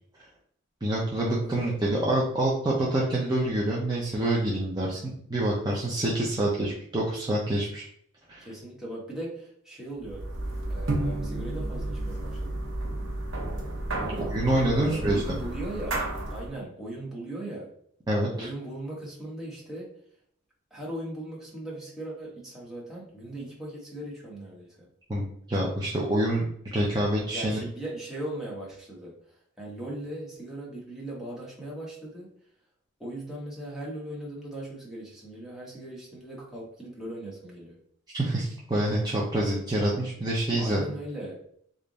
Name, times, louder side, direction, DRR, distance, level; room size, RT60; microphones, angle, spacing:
voice 1, 0.8-7.8 8.3-8.4 14.3-15.4 18.1-18.5 25.1-26.4 26.7-27.6 38.1-40.8, right 1 dB, 20° right, -4 dB, 0.6 m, -26 dB
voice 2, 1.4-1.8 8.4-10.2 10.7-12.8 14.0-14.3 14.7-17.7 18.3-19.9 20.7-24.8 27.3-29.1 29.6-32.3 33.0-37.8 40.6-41.4, right 1 dB, ahead, -5 dB, 1.2 m, -38 dB
sound 1, 10.0-16.5, right 2 dB, 70° right, 1.0 m, -32 dB
3.4 x 2.5 x 3.9 m, 0.66 s
head